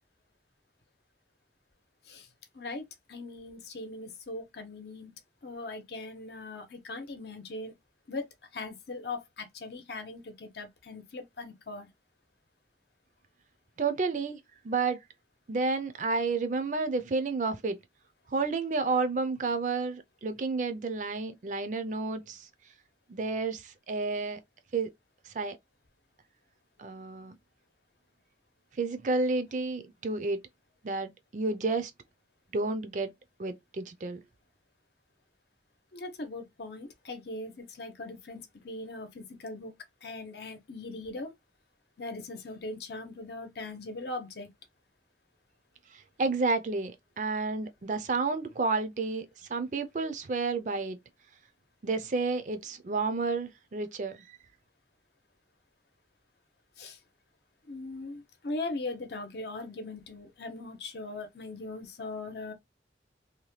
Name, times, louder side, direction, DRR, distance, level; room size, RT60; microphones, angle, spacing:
voice 1, 2.5-5.1 5.4-7.7 8.1-8.3 8.5-11.9 35.9-39.7 40.0-41.3 42.0-44.5 56.8-57.0 57.6-62.5, left 2 dB, 70° left, 0.8 m, -40 dB
voice 2, 13.8-14.4 14.6-15.0 15.5-17.8 18.3-22.4 23.1-24.4 24.7-24.9 25.3-25.6 26.8-27.3 28.8-30.4 30.8-31.9 32.5-33.1 33.4-34.2 46.2-51.0 51.8-54.2, right 3 dB, 45° right, 0.4 m, -30 dB
2.8 x 2.2 x 3.1 m
head